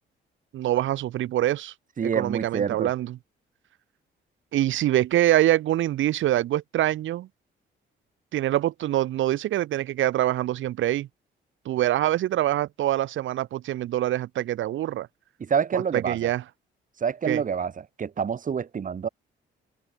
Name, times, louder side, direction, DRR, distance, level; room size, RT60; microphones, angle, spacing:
voice 1, 0.5-1.7 2.0-3.2 4.5-7.3 8.3-11.1 11.6-15.1 15.7-16.4 17.3-17.4, right 13 dB, 75° right, 1.3 m, -25 dB
voice 2, 2.0-2.9 15.4-16.3 17.0-19.1, right 7 dB, 40° right, 1.7 m, -27 dB
open air
cardioid pair, 90°, 20 cm